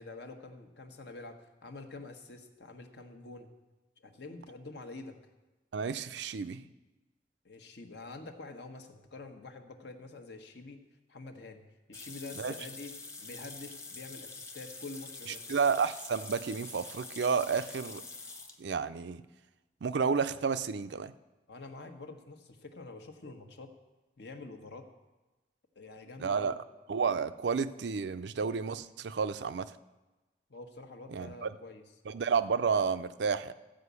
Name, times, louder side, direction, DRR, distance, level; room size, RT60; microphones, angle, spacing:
voice 1, 0.0-3.5 4.0-5.2 7.4-10.8 11.1-11.6 11.9-15.5 21.5-23.7 24.2-24.9 25.7-26.6 30.5-31.8, left 3 dB, 70° left, 5 dB, 1.2 m, -47 dB
voice 2, 5.7-6.6 12.4-12.5 15.5-18.0 18.6-19.2 19.8-21.1 26.2-26.5 26.9-29.7 31.1-31.5 32.1-33.5, right 5 dB, 75° right, 12 dB, 0.5 m, -31 dB
sound 1, 11.9-18.6, left 3 dB, 15° left, 1.0 m, -46 dB
14.0 x 5.1 x 8.2 m, 1.1 s
head